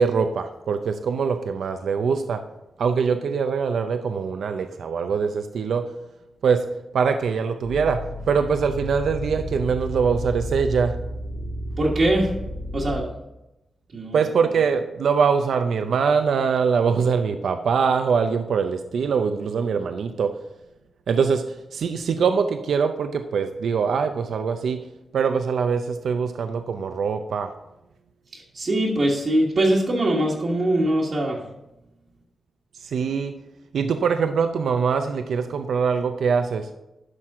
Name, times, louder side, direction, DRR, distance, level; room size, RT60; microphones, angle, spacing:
voice 1, 0.0-2.4 2.8-5.8 6.4-6.6 6.9-8.0 8.3-10.9 14.1-20.3 21.1-21.4 21.7-24.8 25.1-27.5 32.8-33.4 33.7-36.7, right 6 dB, 85° right, 7 dB, 0.5 m, -23 dB
sound 1, 7.6-13.0, equal, 55° left, 3.1 m, -32 dB
voice 2, 11.8-12.3 12.7-13.0 13.9-14.3 28.3-31.4, right 1 dB, 50° right, -4 dB, 1.5 m, -22 dB
11.5 x 6.0 x 3.6 m, 0.91 s
wide cardioid pair, 110°, 0 cm